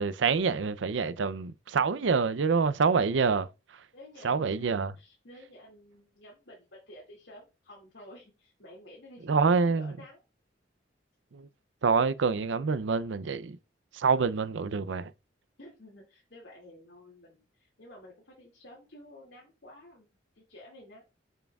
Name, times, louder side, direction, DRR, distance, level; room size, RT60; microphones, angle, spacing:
voice 1, 0.0-3.5 4.2-4.9 9.3-9.9 11.3-11.5 11.8-13.6 13.9-15.1, right 5 dB, 80° right, 0.5 m, -26 dB
voice 2, 3.9-4.6 5.0-10.2 15.6-20.1 20.4-21.1, left 1 dB, 70° left, 2.3 m, -52 dB
6.8 x 6.2 x 2.3 m
head